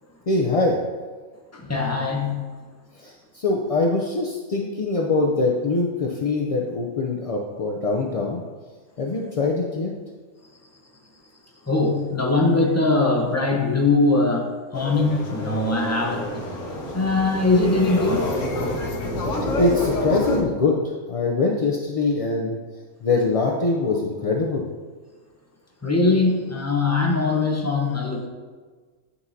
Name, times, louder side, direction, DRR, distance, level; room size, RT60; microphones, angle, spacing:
voice 1, 0.3-0.8 3.0-8.4 9.0-9.9 19.3-20.8 21.1-22.6 23.0-24.6, left 3 dB, 50° left, 0 dB, 0.4 m, -23 dB
voice 2, 1.5-2.4 11.7-16.4 16.9-18.3 25.8-28.3, left 3 dB, 15° left, 0 dB, 0.8 m, -21 dB
sound 1, 14.7-20.4, left 1 dB, 80° left, 1.3 m, -28 dB
9.8 x 5.5 x 2.7 m, 1.4 s
omnidirectional pair, 1.3 m